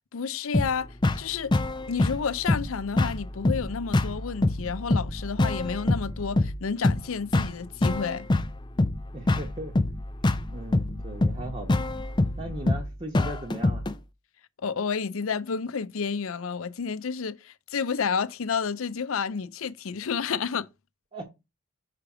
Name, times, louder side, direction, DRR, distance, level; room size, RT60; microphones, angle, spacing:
voice 1, 0.1-1.5 1.9-8.3 14.6-20.7, left 6 dB, 75° left, 0.5 m, -30 dB
sound 1, 0.5-13.9, left 2 dB, 20° left, 0.4 m, -26 dB
voice 2, 9.1-9.7 10.5-11.8 12.4-13.8 21.1-21.2, right 1 dB, 30° right, 1.1 m, -37 dB
5.8 x 4.9 x 4.9 m
head